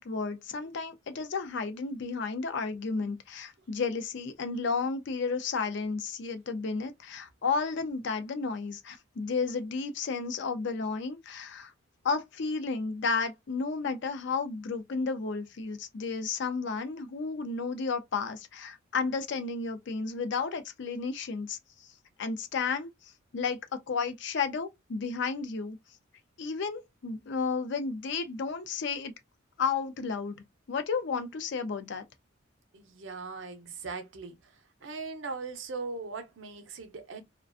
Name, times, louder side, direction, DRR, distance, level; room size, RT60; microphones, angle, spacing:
voice 1, 0.0-11.7 12.0-21.9 22.2-22.9 23.3-25.8 26.4-29.1 29.6-30.4 30.7-32.0, left 4 dB, 60° left, 0.5 m, -32 dB
voice 2, 32.7-34.4 34.8-37.2, right 4 dB, 65° right, 0.6 m, -39 dB
2.4 x 2.2 x 2.4 m
head